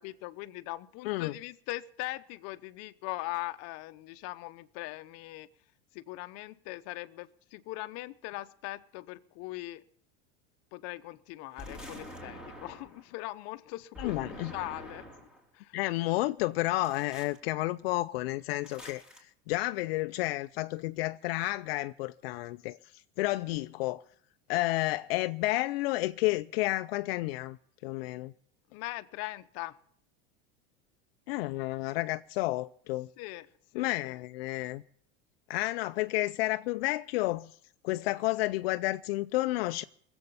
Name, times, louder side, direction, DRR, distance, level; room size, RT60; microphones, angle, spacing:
voice 1, 0.0-5.5 5.9-9.8 10.7-15.1 15.5-15.8 28.7-29.8 33.2-33.5 33.7-34.2, left 19 dB, 55° left, 1.0 m, -40 dB
sound 1, 11.6-13.0 13.9-15.4 16.8-17.4 18.6-19.2, left 1 dB, 5° right, 3.7 m, -46 dB
voice 2, 14.0-14.5 15.7-24.0 24.5-27.6 27.8-28.3 31.3-33.1 33.8-34.8 35.5-37.6 37.8-39.8, left 19 dB, 75° left, 0.6 m, -31 dB
20.5 x 8.0 x 7.0 m
supercardioid pair, 130°, 30 cm